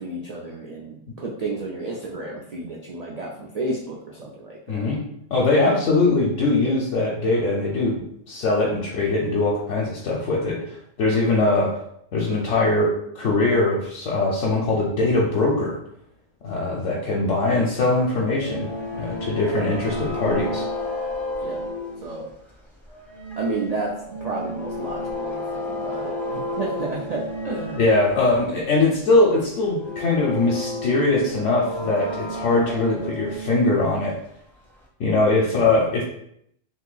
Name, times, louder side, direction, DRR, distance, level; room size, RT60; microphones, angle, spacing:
voice 1, 0.0-4.9 5.6-5.8 6.6-6.8 21.4-21.6 22.0-22.3 23.4-27.8 35.3-35.5, right 2 dB, 80° right, -3 dB, 0.3 m, -31 dB
voice 2, 4.7-5.0 5.3-11.8 12.1-15.8 16.4-20.6 27.8-34.2 35.0-36.0, left 2 dB, 75° left, -3 dB, 1.0 m, -21 dB
sound 1, 17.9-22.5 22.9-28.4 28.6-28.7 29.7-33.7 34.8-34.9, left 1 dB, ahead, 0.4 m, -32 dB
2.8 x 2.6 x 3.8 m, 0.73 s
omnidirectional pair, 1.3 m